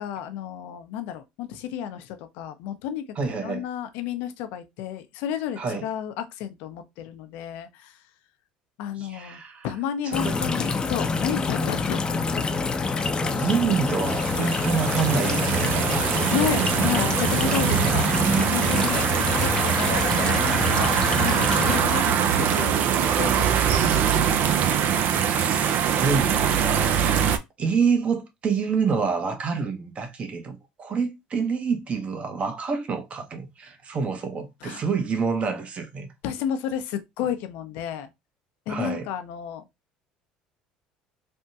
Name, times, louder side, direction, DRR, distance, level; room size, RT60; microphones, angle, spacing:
voice 1, 0.0-8.0 8.8-12.6 14.4-14.6 16.3-20.9 21.2-24.4 34.6-34.8 36.2-38.1 38.7-39.7, left 9 dB, 75° left, 0.6 m, -32 dB
voice 2, 3.2-3.6 5.6-5.8 9.0-9.7 10.0-10.9 13.2-15.9 25.1-26.9 27.6-36.1 38.7-39.1, right 5 dB, 40° right, 0.9 m, -27 dB
sound 1, 10.1-21.8, left 4 dB, 25° left, 0.5 m, -27 dB
sound 2, 13.7-27.4, right 8 dB, 60° right, 0.5 m, -23 dB
3.4 x 2.2 x 2.7 m
supercardioid pair, 85°, 3 cm